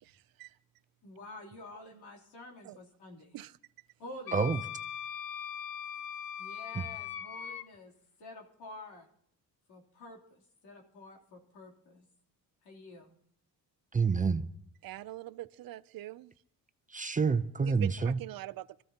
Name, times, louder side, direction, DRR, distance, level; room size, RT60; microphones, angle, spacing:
voice 1, 0.0-0.6 2.6-2.8 3.3-3.6 14.8-16.3 17.6-18.8, right 15 dB, 60° right, 0.6 m, -44 dB
voice 2, 1.0-3.4 4.0-4.4 6.4-7.9 8.2-9.1 9.7-12.1 12.6-13.1, left 2 dB, 90° left, 3.4 m, -49 dB
Wind instrument woodwind instrument, 4.3-7.6, left 9 dB, 60° left, 0.9 m, -40 dB
voice 3, 13.9-14.4 16.9-18.2, right 5 dB, 20° right, 0.6 m, -28 dB
24.5 x 14.5 x 2.9 m
cardioid pair, 115°, 39 cm